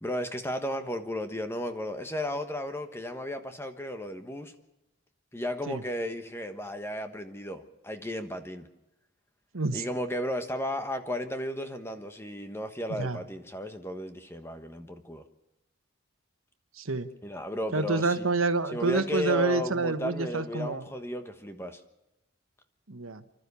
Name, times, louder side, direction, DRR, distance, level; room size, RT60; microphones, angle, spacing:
voice 1, 0.0-4.5 5.3-8.7 9.7-15.2 17.2-18.2 18.7-21.8, left 1 dB, 10° left, 8 dB, 1.3 m, -34 dB
voice 2, 16.7-17.1 17.7-20.8 22.9-23.2, right 3 dB, 85° right, 10 dB, 1.3 m, -28 dB
30.0 x 12.5 x 7.0 m, 0.96 s
head